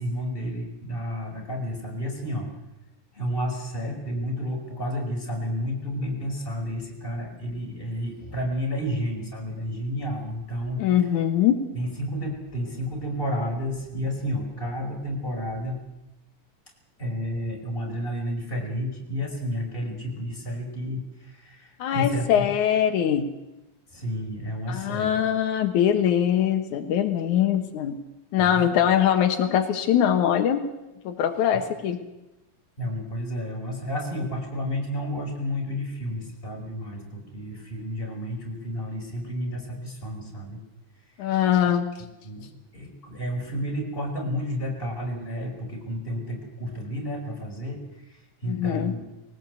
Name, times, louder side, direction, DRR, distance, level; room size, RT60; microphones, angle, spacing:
voice 1, 0.0-2.5 3.1-11.1 11.7-15.8 17.0-22.4 23.9-25.2 28.4-28.6 32.8-40.6 42.2-42.5 42.7-47.8 48.1-49.0, equal, 15° left, 0 dB, 5.3 m, -31 dB
voice 2, 10.8-11.6 21.8-23.3 24.7-28.0 28.3-30.6 31.1-32.0 41.2-41.9 48.5-48.9, left 9 dB, 85° left, 7 dB, 2.7 m, -22 dB
21.0 x 18.5 x 8.2 m, 0.95 s
omnidirectional pair, 3.4 m